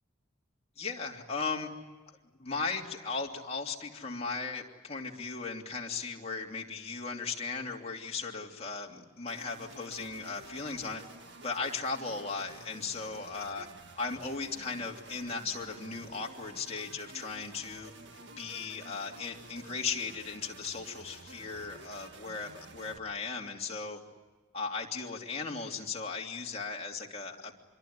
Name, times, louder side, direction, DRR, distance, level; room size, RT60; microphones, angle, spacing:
voice 1, 0.8-1.7 2.4-11.0 11.4-13.7 14.0-17.9 18.4-24.0 24.5-27.5, left 4 dB, 30° left, 0 dB, 2.9 m, -37 dB
sound 1, 9.3-23.0, right 3 dB, 55° right, 1.6 m, -51 dB
26.0 x 23.5 x 9.7 m, 1.3 s
head